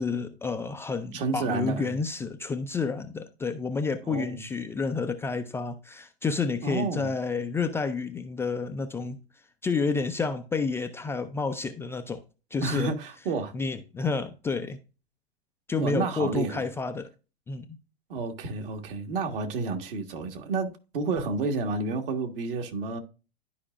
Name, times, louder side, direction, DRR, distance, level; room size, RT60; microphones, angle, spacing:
voice 1, 0.0-9.2 9.6-12.2 12.5-13.0 13.5-14.8 15.7-17.1 17.5-17.8, left 4 dB, 10° left, 0.4 m, -30 dB
voice 2, 1.1-1.9 4.1-4.4 6.6-7.1 12.6-13.5 15.8-16.6 18.1-23.0, right 3 dB, 60° right, 1.6 m, -30 dB
12.0 x 4.9 x 2.4 m
hypercardioid pair, 110°, 32 cm